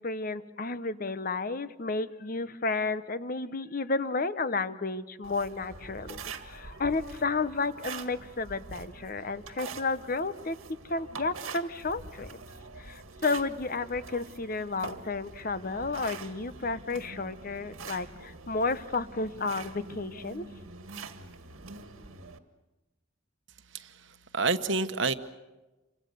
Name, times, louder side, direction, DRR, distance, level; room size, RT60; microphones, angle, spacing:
voice 1, 0.0-10.6 10.9-12.4 12.8-20.4, left 3 dB, 40° left, 13 dB, 0.9 m, -32 dB
sound 1, 5.2-22.4, right 4 dB, 85° right, 1.9 m, -44 dB
voice 2, 23.7-25.1, right 3 dB, 60° right, 10 dB, 1.2 m, -29 dB
28.0 x 25.0 x 6.8 m, 1.1 s
head